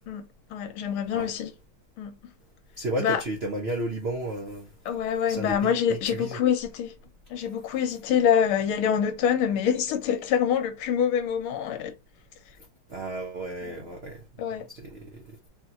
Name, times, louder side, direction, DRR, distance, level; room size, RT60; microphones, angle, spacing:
voice 1, 0.0-1.5 2.0-2.1 3.0-3.2 4.8-6.9 7.3-11.9 13.6-13.9 14.4-14.7, left 8 dB, 85° left, 1.6 m, -26 dB
voice 2, 2.8-4.7 5.3-6.4 12.9-14.1 14.8-15.0, right 1 dB, 85° right, 0.5 m, -32 dB
4.8 x 2.9 x 2.6 m
omnidirectional pair, 2.3 m